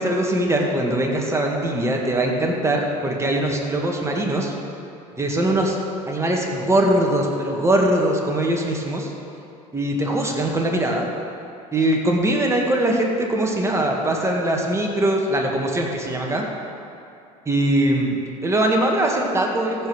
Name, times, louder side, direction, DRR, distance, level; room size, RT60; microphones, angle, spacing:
voice 1, 0.0-4.5 5.2-5.8 6.0-9.1 9.7-11.1 11.7-16.5 17.5-19.9, right 1 dB, 15° right, 0 dB, 2.1 m, -21 dB
14.5 x 5.4 x 6.4 m, 2.6 s
hypercardioid pair, 75°, 19 cm